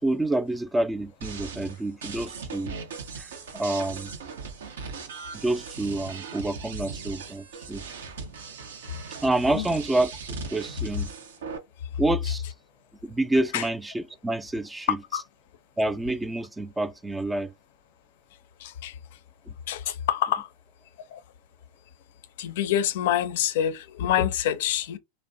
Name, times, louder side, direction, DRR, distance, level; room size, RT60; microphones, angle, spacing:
voice 1, 0.0-2.8 3.2-4.1 5.3-7.9 9.2-10.1 10.5-11.1 12.0-12.5 13.0-15.0 15.8-17.5, right 2 dB, 10° right, 0.3 m, -28 dB
sound 1, 1.2-11.6, right 4 dB, 75° right, 0.5 m, -39 dB
voice 2, 18.6-19.0 19.7-20.5 21.1-21.2 22.4-25.0, left 10 dB, 65° left, 0.4 m, -26 dB
2.5 x 2.1 x 2.5 m
hypercardioid pair, 100°, 0 cm